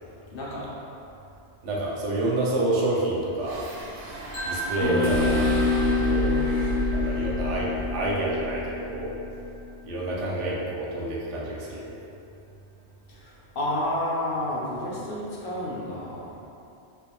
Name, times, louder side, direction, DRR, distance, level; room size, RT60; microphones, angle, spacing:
voice 1, 0.3-0.8 13.1-16.5, left 1 dB, 60° left, -5 dB, 0.7 m, -30 dB
voice 2, 1.6-3.7 4.4-5.5 6.0-6.5 6.9-9.2 9.8-11.9, right 1 dB, 90° right, -4 dB, 1.0 m, -28 dB
sound 1, 3.4-9.8, right 2 dB, 60° right, 0.5 m, -32 dB
sound 2, 4.3-10.3, equal, 40° left, 1.4 m, -38 dB
sound 3, 4.8-9.5, left 5 dB, 90° left, 1.0 m, -27 dB
3.2 x 2.6 x 3.0 m, 2.7 s
omnidirectional pair, 1.2 m